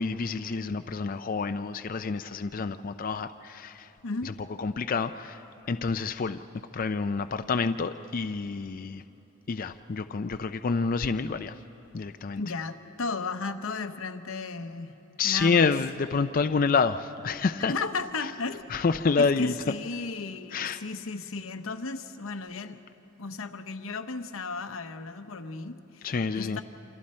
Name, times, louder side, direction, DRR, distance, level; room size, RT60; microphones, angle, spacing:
voice 1, 0.0-3.9 4.6-6.4 6.7-9.0 9.5-11.6 11.9-12.4 15.2-17.7 18.7-19.5 20.5-20.8 26.0-26.6, left 4 dB, 45° left, 9 dB, 0.4 m, -28 dB
voice 2, 4.0-4.4 12.4-14.9 15.2-15.7 17.7-18.7 19.2-22.8 23.2-26.6, left 3 dB, 80° left, 9 dB, 0.9 m, -35 dB
27.5 x 26.5 x 4.3 m, 3.0 s
head